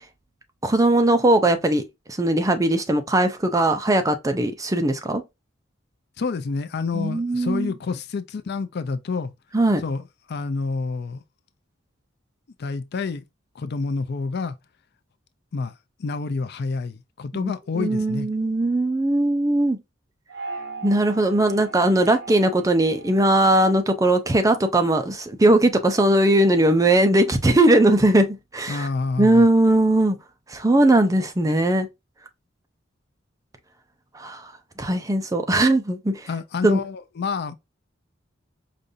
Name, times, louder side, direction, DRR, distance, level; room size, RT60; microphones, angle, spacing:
voice 1, 0.6-1.8 2.2-5.2 6.9-7.7 9.5-9.8 17.3-19.8 20.8-28.9 29.2-30.2 30.5-31.9 34.1-34.5 34.8-36.2 36.6-36.8, right 1 dB, 15° right, 0.5 m, -19 dB
voice 2, 6.2-9.3 9.8-11.2 12.6-13.2 13.6-14.5 15.5-15.7 16.0-18.3 28.7-29.5 36.3-37.5, left 4 dB, 55° left, 0.4 m, -28 dB
sound 1, 20.3-24.9, right 3 dB, 60° right, 1.1 m, -40 dB
5.0 x 2.6 x 2.6 m
head